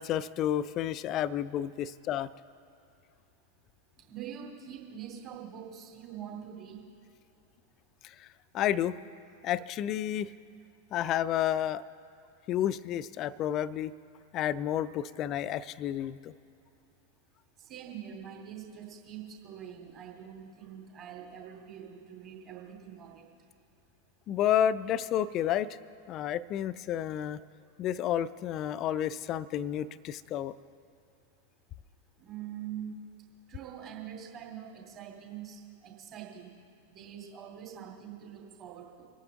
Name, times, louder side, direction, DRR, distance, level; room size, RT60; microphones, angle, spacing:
voice 1, 0.0-2.3 8.0-8.3 8.5-9.0 9.4-10.3 10.9-11.8 12.5-13.9 14.3-16.3 24.3-25.7 26.1-27.4 27.8-30.5, left 11 dB, 35° left, 18 dB, 0.4 m, -30 dB
voice 2, 4.1-6.8 17.6-23.3 32.2-32.9 33.5-36.5 36.9-39.1, right 9 dB, 30° right, 0 dB, 2.6 m, -44 dB
25.0 x 9.0 x 3.9 m, 2.7 s
figure-of-eight pair, 90°, 0 cm